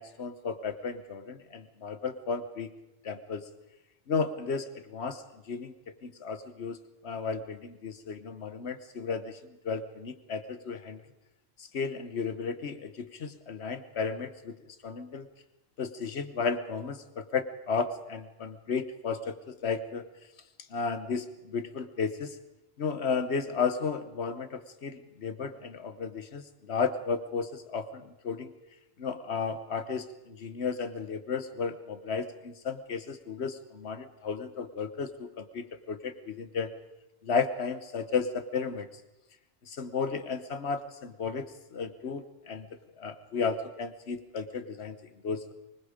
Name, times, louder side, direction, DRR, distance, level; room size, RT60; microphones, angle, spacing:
voice 1, 0.0-2.7 3.0-3.4 4.1-5.7 6.0-6.8 7.0-9.4 9.6-11.0 11.6-14.5 14.8-15.3 15.8-20.0 20.7-22.4 22.8-28.5 29.0-36.7 37.2-38.9 39.7-41.5 41.7-42.7 43.0-45.0 45.2-45.5, left 5 dB, 85° left, 11 dB, 1.3 m, -33 dB
25.0 x 20.5 x 5.1 m, 0.97 s
omnidirectional pair, 1.1 m